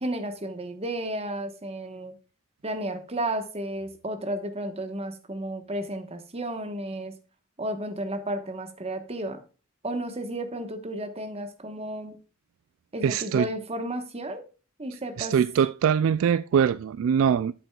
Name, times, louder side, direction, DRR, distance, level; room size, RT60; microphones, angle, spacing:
voice 1, 0.0-2.1 2.6-7.1 7.6-9.4 9.8-12.2 12.9-14.4 14.8-15.3, right 1 dB, 30° right, 1.2 m, -33 dB
voice 2, 13.0-13.5 15.2-17.5, right 7 dB, 65° right, 0.3 m, -23 dB
8.9 x 7.9 x 2.3 m
head